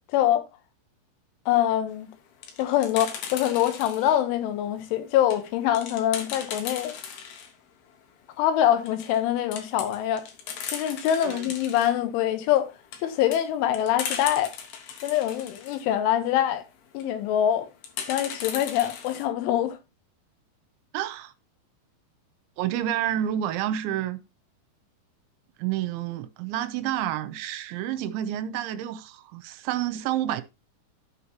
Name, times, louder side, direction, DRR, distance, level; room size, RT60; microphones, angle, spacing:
voice 1, 0.1-0.4 1.5-2.1 2.6-7.0 8.4-10.2 10.7-12.7 13.0-14.5 15.0-16.6 17.0-17.7 18.1-19.8, left 11 dB, 90° left, 3.5 m, -24 dB
sound 1, 2.1-4.2 4.7-7.5 7.9-8.0 8.2-8.3 8.7-9.2 9.5-11.9 12.6-15.8 16.8-17.1 17.8-19.2, left 7 dB, 70° left, 3.0 m, -37 dB
voice 2, 20.9-21.3 22.6-24.2 25.6-30.4, right 11 dB, 80° right, 3.0 m, -29 dB
14.0 x 5.6 x 2.8 m
omnidirectional pair, 5.4 m